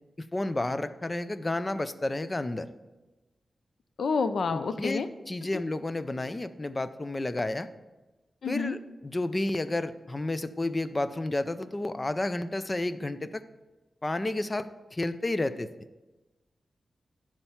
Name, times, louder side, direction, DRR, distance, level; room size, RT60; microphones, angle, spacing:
voice 1, 0.2-2.7 4.5-5.0 5.3-7.7 8.5-13.4 14.0-15.7, left 2 dB, 20° left, 12 dB, 0.4 m, -31 dB
voice 2, 4.0-5.1 5.5-5.6 8.4-8.8, left 4 dB, 75° left, 10 dB, 0.6 m, -28 dB
11.0 x 4.5 x 5.7 m, 1.1 s
wide cardioid pair, 140°, 0 cm